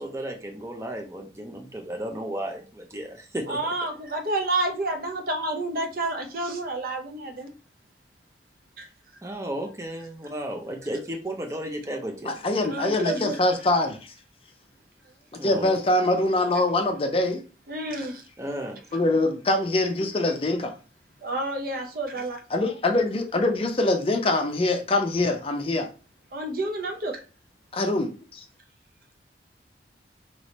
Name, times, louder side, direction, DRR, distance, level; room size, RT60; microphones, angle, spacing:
voice 1, 0.0-3.6 9.2-12.3 15.3-15.8 18.4-18.8, right 1 dB, 15° right, 0.6 m, -34 dB
voice 2, 3.5-7.5 8.8-8.9 12.7-13.4 17.7-18.2 21.2-22.4 26.3-27.2, right 2 dB, 50° right, 0.7 m, -29 dB
voice 3, 12.3-14.1 15.3-17.4 18.9-20.7 22.5-25.9 27.7-28.4, left 2 dB, 30° left, 0.5 m, -24 dB
3.4 x 3.0 x 4.1 m
head